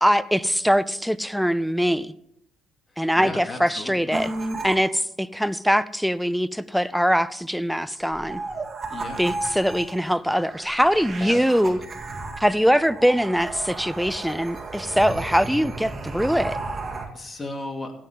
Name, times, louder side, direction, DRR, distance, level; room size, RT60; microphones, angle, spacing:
voice 1, 0.0-2.1 3.0-4.3 4.6-8.4 9.2-11.8 12.4-16.6, equal, ahead, 16 dB, 0.4 m, -22 dB
voice 2, 3.2-4.1 8.9-9.2 11.2-11.7 17.1-17.9, left 2 dB, 35° left, 4 dB, 2.4 m, -35 dB
sound 1, 4.1-4.8 8.0-17.1, right 3 dB, 30° right, 2.1 m, -34 dB
16.0 x 7.6 x 3.7 m, 0.76 s
supercardioid pair, 70°, 0 cm